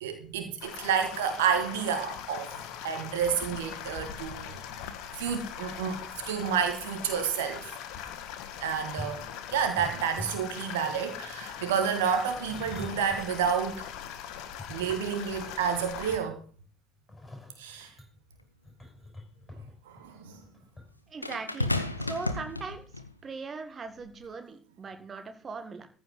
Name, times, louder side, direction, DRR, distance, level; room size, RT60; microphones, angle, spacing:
voice 1, 0.0-2.5 2.8-4.5 5.2-7.7 8.6-9.2 9.5-13.9 14.7-16.4 17.6-17.9 19.9-20.4, right 7 dB, 65° right, 1.6 m, -30 dB
sound 1, 0.6-16.2, left 9 dB, 55° left, 1.3 m, -41 dB
sound 2, 8.0-8.1 8.8-10.6 10.9-11.2 12.0-13.4 13.8-13.9 14.4-15.4 15.8-16.5 17.1-20.8 21.1-21.4 21.7-21.8, left 2 dB, 15° left, 6.0 m, -45 dB
sound 3, 18.3-18.4 21.2-23.1 24.0-24.2, left 2 dB, 85° left, 0.7 m, -32 dB
voice 2, 21.1-21.7 22.0-22.9 23.2-25.9, right 4 dB, 30° right, 1.8 m, -39 dB
14.5 x 5.2 x 7.4 m
figure-of-eight pair, 55°, 0 cm